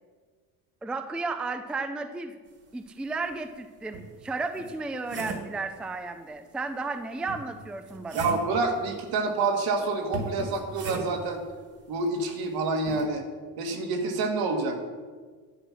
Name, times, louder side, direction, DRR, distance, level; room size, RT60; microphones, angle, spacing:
voice 1, 0.8-2.4 2.7-8.3, right 3 dB, 5° right, 8 dB, 0.4 m, -33 dB
sound 1, 3.3-3.4 3.9-5.6 7.3-8.6 10.1-11.3 12.9-13.1, right 3 dB, 40° right, 1.8 m, -37 dB
voice 2, 8.1-11.4 11.9-13.2 13.6-14.8, right 3 dB, 65° right, 4 dB, 2.1 m, -27 dB
11.5 x 8.1 x 6.1 m, 1.5 s
cardioid pair, 140°, 39 cm